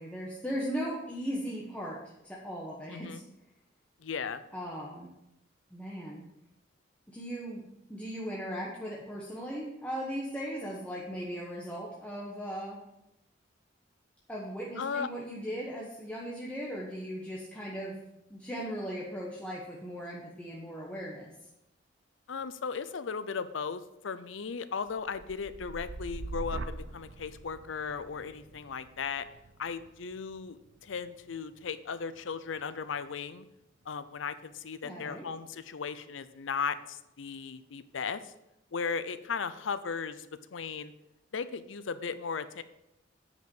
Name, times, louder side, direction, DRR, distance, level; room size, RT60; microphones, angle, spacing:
voice 1, 0.0-2.0 2.2-3.2 4.5-5.1 5.7-6.2 7.1-7.6 7.9-12.8 14.3-18.0 18.3-21.3 34.8-35.3, equal, 5° left, -5 dB, 1.1 m, -38 dB
voice 2, 2.9-3.2 4.0-4.4 14.8-15.1 22.3-29.3 29.6-33.4 33.9-38.3 38.7-40.9 41.3-42.6, left 5 dB, 85° left, 13 dB, 0.6 m, -36 dB
sound 1, 24.9-32.9 33.4-33.8, right 3 dB, 75° right, 0.6 m, -44 dB
9.2 x 5.2 x 5.4 m, 0.86 s
head